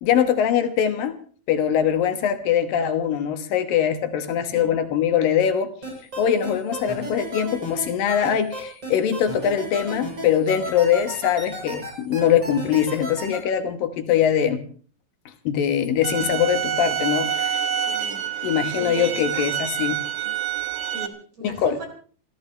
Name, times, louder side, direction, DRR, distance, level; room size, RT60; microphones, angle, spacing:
voice 1, 0.0-1.2 1.5-5.7 6.2-14.6 15.5-17.6 18.4-20.0 21.4-21.8, left 9 dB, 75° left, 8 dB, 2.9 m, -22 dB
sound 1, 5.8-13.4, right 1 dB, 30° right, 8.5 m, -33 dB
sound 2, 16.0-21.1, right 9 dB, 65° right, 1.3 m, -27 dB
voice 2, 17.9-18.2 18.5-19.5 20.8-21.9, right 1 dB, 50° right, 3 dB, 5.5 m, -38 dB
28.5 x 15.0 x 3.3 m, 0.42 s
omnidirectional pair, 4.2 m